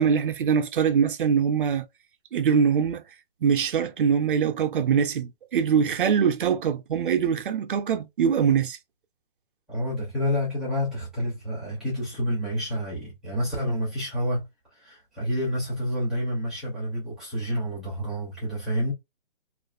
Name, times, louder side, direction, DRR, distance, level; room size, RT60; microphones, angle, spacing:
voice 1, 0.0-1.8 2.3-3.0 3.4-8.8, right 7 dB, 60° right, 0.5 m, -23 dB
voice 2, 9.7-18.9, equal, ahead, 0.5 m, -29 dB
2.4 x 2.4 x 2.3 m
hypercardioid pair, 155°, 29 cm